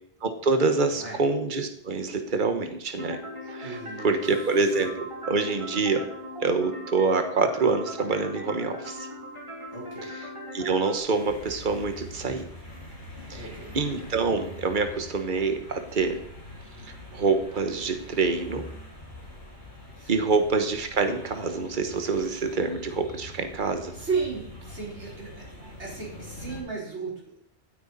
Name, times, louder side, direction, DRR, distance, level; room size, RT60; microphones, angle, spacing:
voice 1, 0.2-3.2 3.5-6.1 6.4-9.1 10.0-10.2 10.5-12.5 13.3-13.5 13.7-16.2 17.1-18.7 20.1-23.9, right 4 dB, 45° right, 7 dB, 1.5 m, -26 dB
sound 1, 3.0-11.0, equal, 25° right, 3.3 m, -39 dB
voice 2, 3.6-4.2 9.7-10.1 13.3-13.7 20.0-20.4 23.9-25.5 25.8-27.4, right 5 dB, 80° right, -4 dB, 4.7 m, -34 dB
sound 2, 11.1-26.6, left 1 dB, 65° left, 5.3 m, -44 dB
16.5 x 9.3 x 4.2 m, 0.73 s
omnidirectional pair, 1.2 m